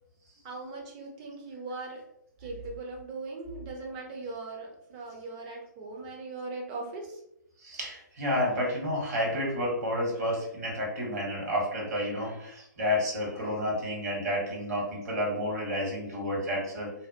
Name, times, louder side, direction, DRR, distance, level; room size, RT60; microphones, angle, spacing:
voice 1, 0.4-2.0 2.4-7.2, right 3 dB, 30° right, 0 dB, 0.5 m, -39 dB
voice 2, 7.6-16.9, left 1 dB, 55° right, -2 dB, 1.0 m, -30 dB
2.6 x 2.1 x 2.3 m, 0.79 s
figure-of-eight pair, 120°, 10 cm